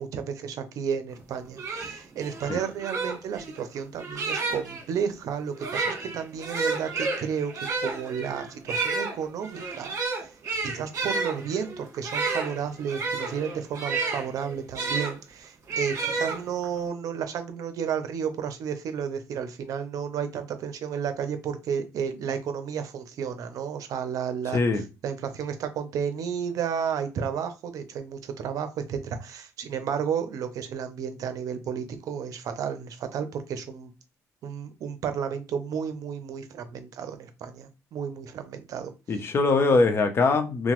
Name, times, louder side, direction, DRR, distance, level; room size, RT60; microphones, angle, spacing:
voice 1, 0.0-7.5 7.8-10.3 10.6-33.9 34.4-38.9, right 7 dB, 70° right, 0.6 m, -32 dB
sound 1, 1.2-1.3 1.6-4.8 5.5-15.1 15.7-16.8, right 3 dB, 50° right, 1.4 m, -31 dB
voice 2, 24.5-24.8 39.1-40.7, left 3 dB, 40° left, 0.6 m, -22 dB
2.9 x 2.1 x 2.9 m
cardioid pair, 105°, 6 cm